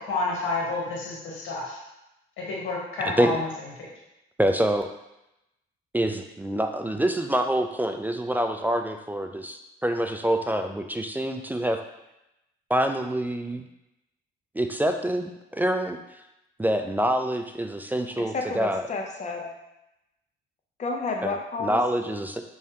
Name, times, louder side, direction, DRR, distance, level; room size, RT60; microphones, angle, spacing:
voice 1, 0.0-1.8 2.4-3.5, left 2 dB, 85° left, -3 dB, 1.3 m, -29 dB
voice 2, 3.0-3.4 4.4-4.9 5.9-11.8 12.7-13.6 14.6-16.0 16.6-18.8 21.2-22.4, right 1 dB, 10° right, 6 dB, 0.3 m, -26 dB
voice 3, 18.3-19.6 20.8-21.8, left 3 dB, 35° left, 1 dB, 0.7 m, -31 dB
4.7 x 3.2 x 2.8 m, 0.89 s
cardioid pair, 90°, 20 cm